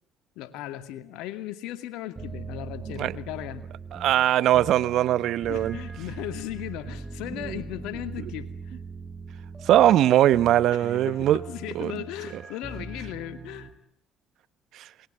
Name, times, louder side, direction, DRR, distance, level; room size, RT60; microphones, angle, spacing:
voice 1, 0.4-3.6 5.5-8.8 10.7-13.7, left 13 dB, 75° left, 2.4 m, -37 dB
sound 1, 2.2-13.7, right 4 dB, 25° right, 7.6 m, -40 dB
voice 2, 3.9-5.8 7.5-7.6 9.7-11.4 11.7-11.9, right 12 dB, 65° right, 1.1 m, -20 dB
28.0 x 22.0 x 9.1 m
supercardioid pair, 70°, 0 cm